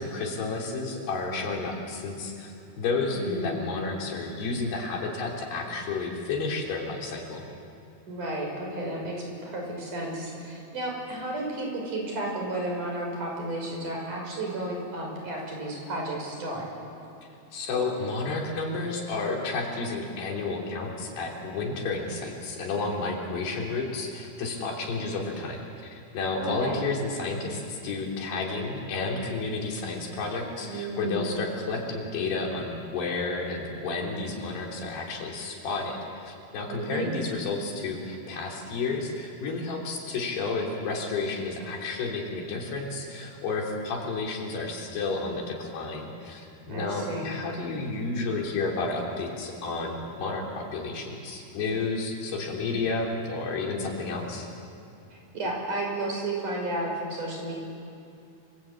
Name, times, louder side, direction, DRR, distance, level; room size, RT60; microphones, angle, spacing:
voice 1, 0.0-7.4 17.5-54.5, left 3 dB, 80° left, -1 dB, 5.5 m, -31 dB
voice 2, 3.1-3.6 8.1-16.7 26.4-26.8 30.6-31.3 36.7-37.1 46.7-47.3 55.1-57.5, right 1 dB, 50° right, 0 dB, 7.1 m, -32 dB
28.5 x 22.0 x 8.8 m, 2.7 s
omnidirectional pair, 4.7 m